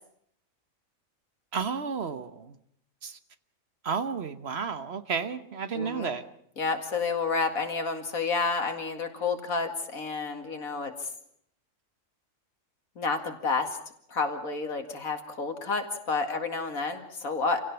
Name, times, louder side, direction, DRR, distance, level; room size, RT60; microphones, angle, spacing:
voice 1, 1.5-2.6 3.0-3.2 3.8-6.2, right 6 dB, 50° right, 11 dB, 1.3 m, -32 dB
voice 2, 5.7-6.1 6.6-10.9 13.0-13.8 14.1-17.6, left 4 dB, 80° left, 6 dB, 2.6 m, -30 dB
27.5 x 16.5 x 7.0 m, 0.70 s
omnidirectional pair, 1.4 m